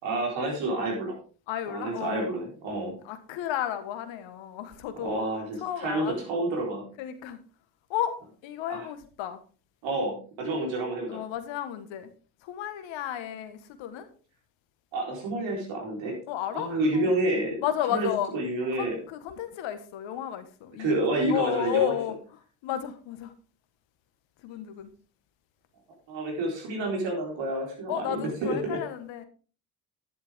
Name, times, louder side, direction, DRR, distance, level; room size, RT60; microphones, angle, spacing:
voice 1, 0.0-1.2 1.7-2.9 5.0-6.8 8.7-8.9 9.8-11.2 14.9-16.2 16.5-17.6 17.9-19.0 20.8-22.0 26.1-28.8, right 2 dB, 75° right, 0 dB, 4.3 m, -29 dB
voice 2, 1.5-2.3 2.7-2.8 3.0-5.3 5.6-6.2 7.0-7.4 7.9-8.1 8.4-9.4 11.1-12.1 12.4-14.1 16.3-17.1 17.6-18.3 18.7-21.0 21.3-22.2 22.6-23.3 24.4-24.9 27.9-29.3, left 11 dB, 80° left, 10 dB, 1.5 m, -32 dB
11.0 x 10.5 x 3.6 m, 0.38 s
hypercardioid pair, 45°, 45 cm